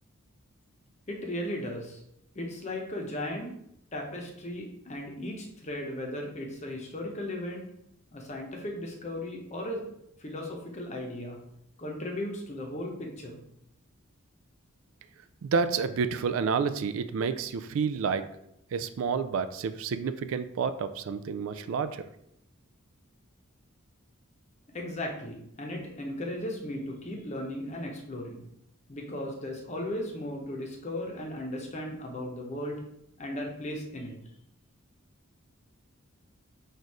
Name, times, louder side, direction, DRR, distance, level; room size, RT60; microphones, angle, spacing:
voice 1, 1.1-2.0 2.3-3.5 3.9-7.6 8.1-9.8 10.2-11.4 11.8-13.4 24.7-28.4 28.9-32.8 33.2-34.1, left 1 dB, 30° left, 0 dB, 0.8 m, -36 dB
voice 2, 15.4-18.3 18.7-22.0, right 5 dB, 65° right, 11 dB, 0.3 m, -29 dB
4.3 x 2.5 x 4.7 m, 0.76 s
head